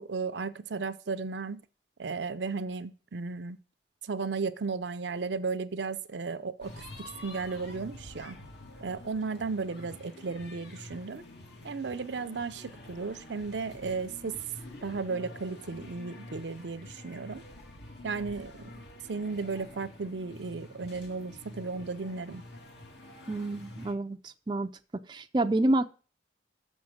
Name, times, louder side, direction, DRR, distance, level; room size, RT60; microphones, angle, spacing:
voice 1, 0.0-1.6 2.0-3.6 4.0-6.9 7.2-8.4 8.8-11.2 11.6-14.4 14.8-17.4 18.0-18.8 19.1-22.4, right 4 dB, 70° right, 0.6 m, -35 dB
sound 1, 6.6-23.9, left 1 dB, 65° left, 2.1 m, -47 dB
voice 2, 23.3-24.7 25.1-25.9, right 1 dB, 25° right, 0.4 m, -28 dB
7.0 x 6.2 x 7.1 m
head